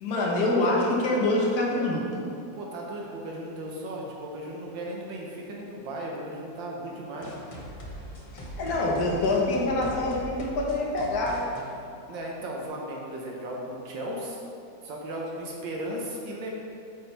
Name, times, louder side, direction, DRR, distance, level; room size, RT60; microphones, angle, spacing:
voice 1, 0.0-2.1 8.6-11.5, left 2 dB, 55° left, -3 dB, 1.5 m, -25 dB
voice 2, 2.5-7.4 12.1-14.4 14.8-16.5, right 1 dB, 75° right, -2 dB, 1.6 m, -36 dB
sound 1, 7.2-12.7, right 1 dB, 40° left, 0.4 m, -41 dB
8.6 x 5.6 x 3.4 m, 2.5 s
omnidirectional pair, 2.1 m